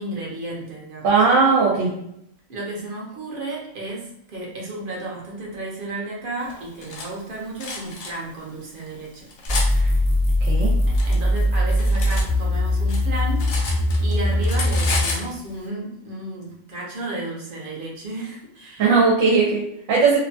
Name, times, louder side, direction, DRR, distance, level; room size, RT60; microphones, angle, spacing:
voice 1, 0.0-1.2 2.5-9.3 9.7-10.0 10.9-13.7 14.0-18.9, right 2 dB, 50° right, -3 dB, 0.8 m, -33 dB
voice 2, 1.0-1.9 9.7-9.9 10.4-10.7 18.8-20.2, right 4 dB, 75° right, -3 dB, 1.0 m, -18 dB
Cutlery silverware, 6.5-7.1 7.6-8.1 8.8-9.7 10.6-12.3 12.6-14.1 14.4-15.3, left 3 dB, 85° left, 1.0 m, -31 dB
sound 1, 9.5-15.0, left 1 dB, 45° left, 0.4 m, -20 dB
2.8 x 2.1 x 2.6 m, 0.75 s
omnidirectional pair, 1.4 m